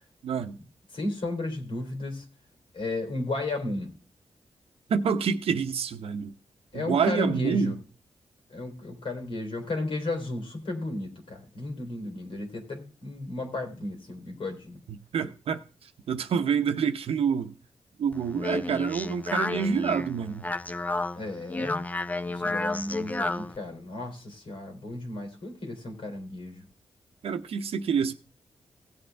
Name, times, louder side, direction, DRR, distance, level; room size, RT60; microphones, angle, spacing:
voice 1, 0.2-0.6 4.9-6.3 6.7-7.8 14.9-15.6 16.1-17.5 18.0-20.4 27.2-28.1, right 6 dB, 85° right, 0.8 m, -27 dB
voice 2, 0.9-2.3 2.7-3.9 6.7-7.7 8.5-14.8 21.1-21.8 22.3-26.6, left 2 dB, 70° left, 3.3 m, -34 dB
Speech, 18.1-23.6, left 2 dB, 15° left, 0.5 m, -31 dB
17.0 x 7.8 x 3.4 m
cardioid pair, 95°, 10 cm